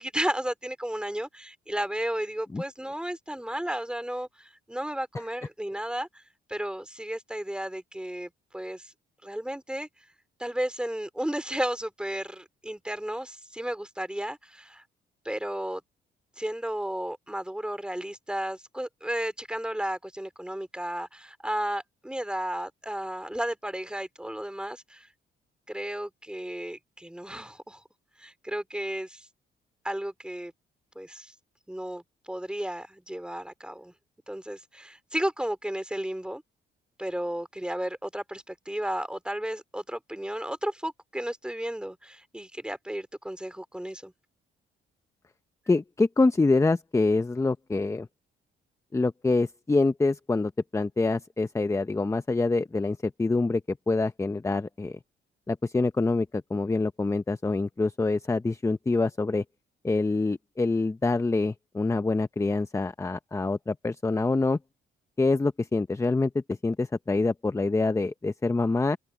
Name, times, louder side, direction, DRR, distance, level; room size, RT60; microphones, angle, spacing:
voice 1, 0.0-6.2 6.5-8.9 9.2-9.9 10.4-14.8 15.3-15.8 16.4-25.1 25.7-27.8 28.2-29.3 29.8-30.5 31.0-31.3 31.7-33.9 34.3-36.4 37.0-44.1, right 1 dB, 5° right, 3.6 m, -33 dB
voice 2, 45.7-48.1 48.9-55.0 55.5-59.4 59.8-64.6 65.2-69.0, left 3 dB, 15° left, 0.7 m, -26 dB
open air
cardioid pair, 90°, 20 cm